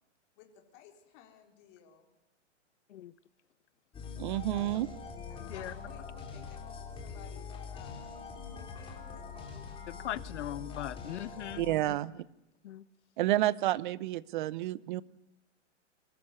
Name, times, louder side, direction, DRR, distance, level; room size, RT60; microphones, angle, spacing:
voice 1, 0.7-2.1 4.4-4.8 5.3-8.2 8.7-9.0 9.3-9.5 11.0-11.2, left 10 dB, 40° left, 4.1 m, -55 dB
sound 1, 3.9-11.8, left 5 dB, 15° left, 3.3 m, -43 dB
voice 2, 4.2-4.9 11.6-12.2 13.2-15.0, right 15 dB, 40° right, 0.8 m, -30 dB
voice 3, 9.9-12.0 12.6-12.8, left 12 dB, 65° left, 1.0 m, -40 dB
23.5 x 14.0 x 9.8 m
hypercardioid pair, 150°, 37 cm